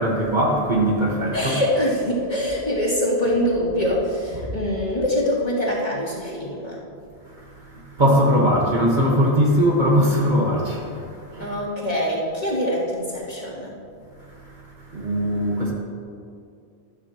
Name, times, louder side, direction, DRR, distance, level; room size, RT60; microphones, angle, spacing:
voice 1, 0.0-1.5 7.2-11.6 14.2-15.7, equal, 45° right, -2 dB, 1.6 m, -21 dB
voice 2, 1.3-6.8 11.4-13.7, equal, 35° left, -7 dB, 2.8 m, -24 dB
13.0 x 12.5 x 3.0 m, 2.4 s
omnidirectional pair, 1.1 m